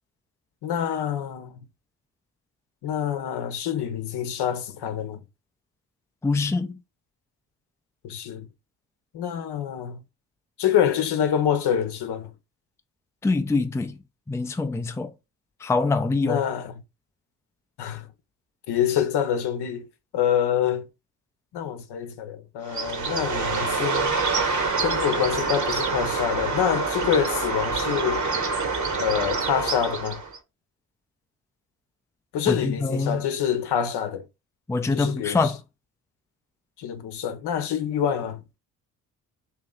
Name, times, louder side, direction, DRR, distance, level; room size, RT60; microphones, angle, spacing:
voice 1, 0.6-1.6 2.8-5.2 8.0-8.5 9.1-10.0 10.6-12.3 16.2-16.7 17.8-18.1 18.7-19.9 20.1-20.9 21.5-24.2 24.8-28.3 29.0-30.2 32.3-34.2 34.9-35.5 36.8-38.4, left 9 dB, 60° left, 0.9 m, -26 dB
voice 2, 6.2-6.8 13.2-14.0 14.3-15.1 15.6-16.4 32.5-33.2 34.7-35.6, left 3 dB, 5° left, 0.5 m, -24 dB
Bird, 22.6-30.4, right 4 dB, 40° right, 1.1 m, -26 dB
3.0 x 3.0 x 3.7 m
hypercardioid pair, 45°, 46 cm